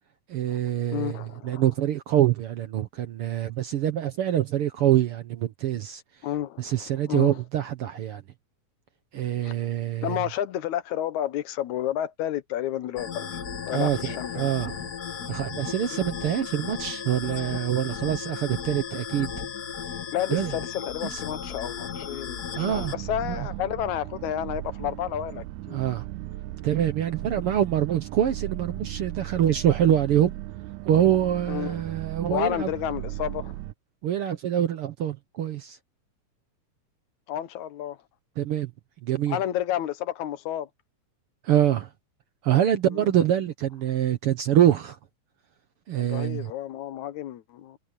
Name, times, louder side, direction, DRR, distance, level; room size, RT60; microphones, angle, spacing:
voice 1, 0.3-1.2 1.4-6.0 6.6-8.2 9.1-10.2 13.7-14.9 15.3-19.4 20.3-20.5 21.1-21.2 22.5-22.9 23.2-23.5 25.7-26.1 26.6-30.3 30.8-32.7 34.0-35.8 38.4-38.7 39.0-39.4 41.4-41.9 42.4-45.0 45.9-46.5, right 11 dB, 65° right, 1.5 m, -25 dB
voice 2, 0.9-1.6 6.2-7.4 9.4-9.6 10.0-13.3 13.6-14.7 15.9-16.1 20.1-25.8 31.5-32.0 32.3-33.5 37.3-38.0 39.3-40.7 42.9-43.1 46.0-47.8, left 11 dB, 75° left, 2.3 m, -31 dB
sound 1, 13.0-22.9, left 7 dB, 60° left, 1.0 m, -35 dB
sound 2, 22.7-33.7, right 16 dB, 85° right, 2.0 m, -36 dB
omnidirectional pair, 3.4 m